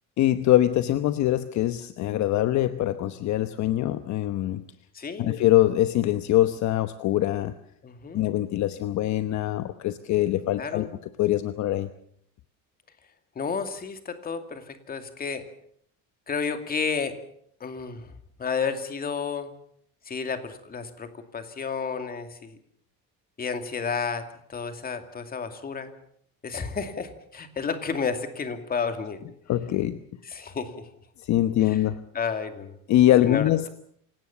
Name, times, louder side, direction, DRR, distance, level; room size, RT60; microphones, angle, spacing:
voice 1, 0.2-4.6 5.2-7.5 8.1-10.9 11.2-11.9 29.5-30.0 31.2-32.0 32.9-33.7, left 13 dB, 55° left, 11 dB, 1.0 m, -23 dB
voice 2, 4.9-5.4 7.8-8.2 10.6-10.9 13.4-15.4 16.3-17.2 17.6-18.1 18.4-19.5 20.1-22.6 23.4-24.2 24.5-25.9 26.4-29.2 30.3-30.8 31.6-31.8 32.1-32.8 33.3-33.7, left 5 dB, 25° left, 8 dB, 2.5 m, -31 dB
27.5 x 17.5 x 7.2 m, 0.66 s
cardioid pair, 150°, 35 cm